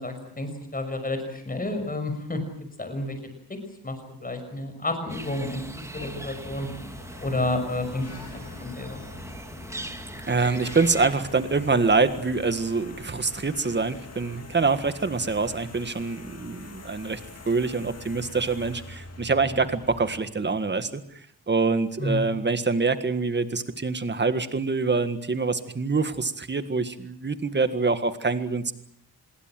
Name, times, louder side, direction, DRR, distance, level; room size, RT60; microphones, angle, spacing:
voice 1, 0.0-2.4 2.8-3.2 3.8-4.0 4.2-6.7 7.2-8.0 8.3-9.0 19.5-19.6 22.0-22.3, left 2 dB, 20° left, 7 dB, 5.9 m, -30 dB
sound 1, 5.1-11.1, right 1 dB, 5° right, 1.7 m, -40 dB
sound 2, 5.9-20.2, left 3 dB, 40° left, 3.0 m, -44 dB
voice 2, 10.3-17.2 17.4-21.0 21.5-28.7, right 4 dB, 30° right, 10 dB, 1.8 m, -25 dB
26.0 x 22.0 x 7.7 m, 0.66 s
wide cardioid pair, 170°, 38 cm